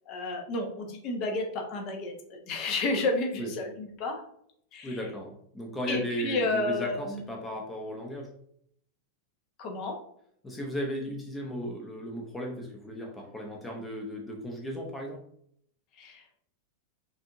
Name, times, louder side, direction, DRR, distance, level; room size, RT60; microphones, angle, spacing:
voice 1, 0.1-4.2 4.7-5.0 5.9-7.2 9.6-9.9 16.0-16.2, left 2 dB, 40° left, 2 dB, 0.9 m, -31 dB
voice 2, 4.8-8.3 10.4-15.2, equal, 15° left, 0 dB, 0.8 m, -36 dB
5.2 x 2.7 x 2.6 m, 0.68 s
figure-of-eight pair, 90°, 0 cm